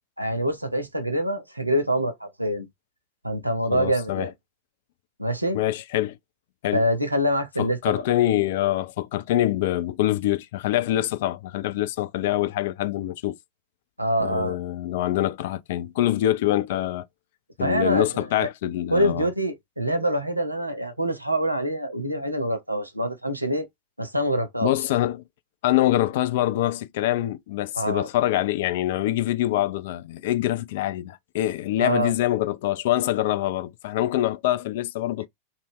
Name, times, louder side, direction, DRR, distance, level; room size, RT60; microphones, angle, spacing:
voice 1, 0.2-2.7 3.2-4.3 5.2-5.6 6.7-8.0 14.0-14.6 17.6-18.5 18.9-23.7 24.0-24.7 27.8-28.1 31.8-32.1, equal, 85° right, 0.6 m, -25 dB
voice 2, 3.7-4.3 5.5-6.2 6.6-6.8 7.6-13.4 14.2-17.1 17.6-19.3 24.6-25.2 25.6-35.3, left 14 dB, 55° left, 0.3 m, -25 dB
2.6 x 2.1 x 3.4 m
figure-of-eight pair, 90°, 0 cm